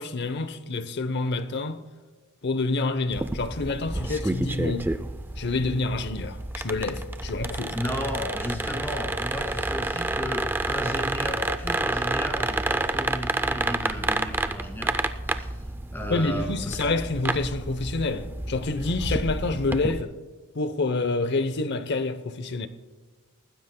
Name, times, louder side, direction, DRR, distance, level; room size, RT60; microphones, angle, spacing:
voice 1, 0.0-1.8 2.4-4.9 5.4-7.8 16.1-20.1 20.5-22.7, left 3 dB, 50° left, 0.7 m, -28 dB
sound 1, 3.1-20.0, right 2 dB, 10° right, 0.4 m, -29 dB
voice 2, 7.7-15.0 15.3-15.6 15.9-16.8, equal, 10° left, 2.1 m, -34 dB
19.5 x 15.0 x 2.2 m
head